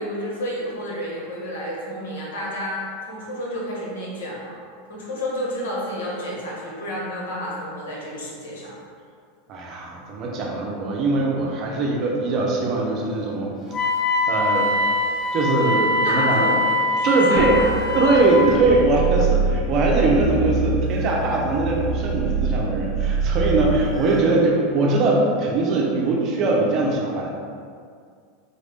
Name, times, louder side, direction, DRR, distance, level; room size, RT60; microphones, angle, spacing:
voice 1, 0.0-4.6 4.9-8.7 16.0-16.6 17.0-17.9, left 1 dB, 90° left, -4 dB, 1.3 m, -30 dB
voice 2, 9.5-13.6 14.3-14.7 15.3-16.5 17.0-17.6 17.9-27.3, right 2 dB, 40° right, -1 dB, 0.7 m, -21 dB
Wind instrument woodwind instrument, 13.7-18.5, left 2 dB, 25° left, 0.8 m, -22 dB
sound 1, 17.4-24.2, right 4 dB, 15° right, 0.3 m, -25 dB
4.1 x 2.6 x 3.5 m, 2.1 s
supercardioid pair, 140°, 0 cm